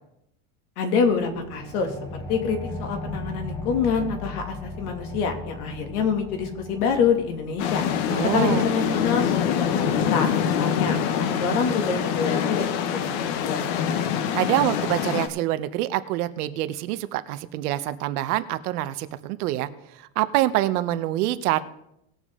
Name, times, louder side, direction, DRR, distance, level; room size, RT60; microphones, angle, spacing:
voice 1, 0.8-1.9 2.3-7.8 8.3-13.7, left 6 dB, 80° left, 4 dB, 2.4 m, -26 dB
sound 1, 1.0-12.1, left 2 dB, 10° left, 0.8 m, -38 dB
sound 2, 7.6-15.3, left 8 dB, 45° left, 0.8 m, -25 dB
voice 2, 8.1-8.7 14.3-21.6, right 15 dB, 75° right, 12 dB, 0.9 m, -26 dB
19.0 x 7.3 x 3.7 m, 0.82 s
supercardioid pair, 180°, 45 cm